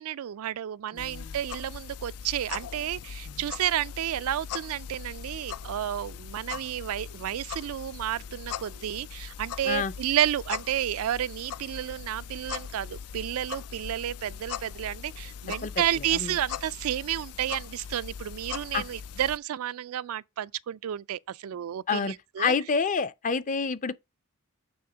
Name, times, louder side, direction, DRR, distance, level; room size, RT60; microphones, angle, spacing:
voice 1, 0.0-22.5, right 11 dB, 70° right, 0.3 m, -31 dB
voice 2, 0.9-1.4 3.3-3.4 9.6-9.9 15.5-16.4 18.7-18.8 21.9-23.9, left 5 dB, 35° left, 0.5 m, -29 dB
sound 1, 1.0-19.4, left 7 dB, 80° left, 0.4 m, -40 dB
8.6 x 3.5 x 5.0 m
head